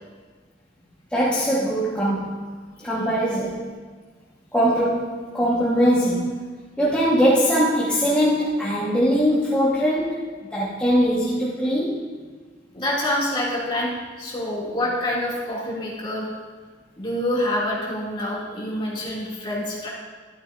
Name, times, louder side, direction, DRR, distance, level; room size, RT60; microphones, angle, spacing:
voice 1, 1.1-2.4 2.8-3.6 4.5-6.4 6.8-12.0, equal, 5° left, -9 dB, 1.4 m, -21 dB
voice 2, 12.7-16.3 17.0-19.9, left 1 dB, 25° left, -5 dB, 2.5 m, -26 dB
12.5 x 12.0 x 2.6 m, 1.5 s
head